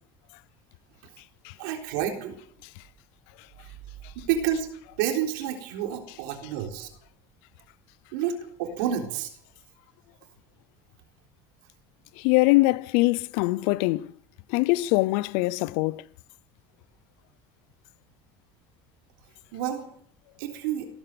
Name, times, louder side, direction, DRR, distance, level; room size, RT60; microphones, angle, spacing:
voice 1, 1.6-2.4 4.2-4.7 5.0-6.9 8.1-9.3 19.5-19.9 20.4-20.9, right 9 dB, 80° right, 3.9 m, -29 dB
voice 2, 12.2-14.1 14.5-16.0, left 21 dB, 75° left, 0.6 m, -22 dB
17.5 x 12.0 x 6.9 m
supercardioid pair, 100°, 10 cm